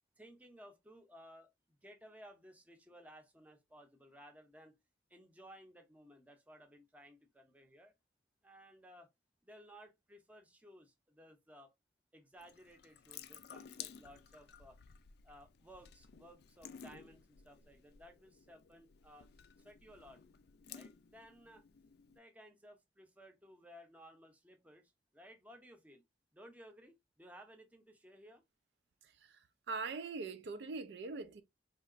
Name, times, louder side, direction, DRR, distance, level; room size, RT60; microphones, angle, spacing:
voice 1, 0.2-4.8 5.1-7.9 8.4-9.1 9.4-11.7 12.1-14.8 15.2-19.3 19.6-20.2 20.7-21.6 22.1-26.0 26.3-28.4, equal, 10° right, 0.7 m, -58 dB
Water tap faucet / Sink (filling or washing) / Drip, 12.4-22.2, left 8 dB, 60° left, 0.4 m, -55 dB
voice 2, 29.0-31.4, right 4 dB, 60° right, 0.4 m, -43 dB
4.2 x 2.8 x 2.4 m
head